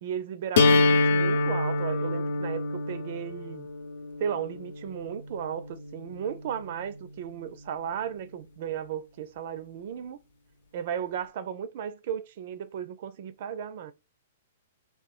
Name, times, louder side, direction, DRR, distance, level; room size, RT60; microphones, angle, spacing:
voice 1, 0.0-3.7 4.2-10.2 10.7-13.9, right 8 dB, 50° right, 0.5 m, -35 dB
sound 1, 0.6-6.5, left 3 dB, 65° left, 0.7 m, -26 dB
3.7 x 2.3 x 2.4 m
hypercardioid pair, 155°, 0 cm